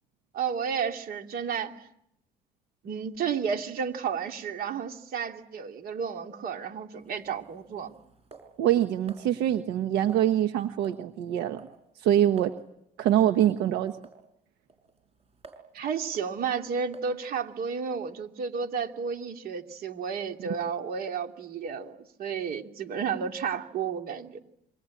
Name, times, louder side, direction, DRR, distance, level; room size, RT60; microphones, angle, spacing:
voice 1, 0.3-1.7 2.8-7.9 15.7-24.4, right 6 dB, 60° right, 5 dB, 2.9 m, -32 dB
sound 1, 7.0-9.3 10.1-10.5 10.8-11.1 11.3-11.8 12.1-12.2 12.4-12.6 13.2-13.4 14.0-14.2 14.7-15.7 16.1-16.3 16.9-17.2, right 4 dB, 35° right, 5.3 m, -52 dB
voice 2, 8.6-11.7 12.0-12.5 13.0-13.9, right 11 dB, 85° right, 8 dB, 1.2 m, -24 dB
27.5 x 24.0 x 8.6 m, 0.77 s
cardioid pair, 110°, 17 cm